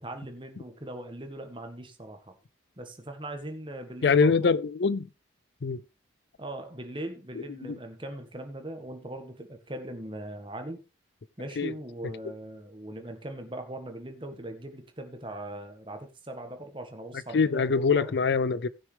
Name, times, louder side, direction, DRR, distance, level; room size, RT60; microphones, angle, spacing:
voice 1, 0.0-2.4 2.8-4.5 6.4-10.8 11.4-18.1, right 1 dB, 25° right, 1.6 m, -40 dB
voice 2, 4.0-5.1 5.6-5.8 7.6-7.7 11.6-11.7 17.3-18.7, left 5 dB, 60° left, 0.4 m, -23 dB
18.0 x 6.4 x 3.4 m
head